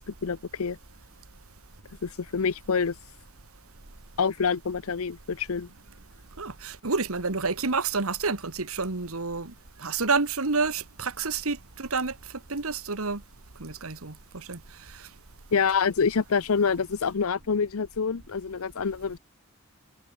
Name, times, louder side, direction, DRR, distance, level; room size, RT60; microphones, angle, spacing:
voice 1, 0.1-0.8 2.0-2.9 4.2-5.7 15.5-19.2, left 5 dB, 70° left, 0.6 m, -26 dB
voice 2, 6.4-9.5 9.8-12.1 12.5-13.2 13.6-14.6, right 4 dB, 75° right, 1.7 m, -29 dB
head